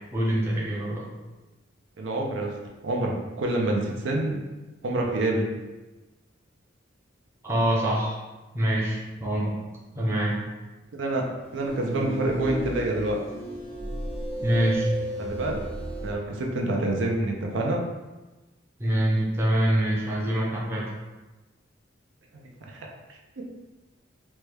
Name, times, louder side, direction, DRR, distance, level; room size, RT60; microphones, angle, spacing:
voice 1, 0.1-1.0 7.4-8.2 8.5-9.5 9.9-10.4 14.4-14.9 18.8-20.8, right 1 dB, 15° right, -5 dB, 0.5 m, -25 dB
voice 2, 2.0-2.5 2.8-4.4 4.8-5.5 10.9-11.3 11.5-13.2 15.2-15.6 16.0-17.8 22.3-23.4, right 2 dB, 70° right, 0 dB, 0.5 m, -27 dB
sound 1, 11.5-16.2, right 1 dB, 30° left, 0.6 m, -33 dB
3.1 x 2.2 x 3.3 m, 1.1 s
head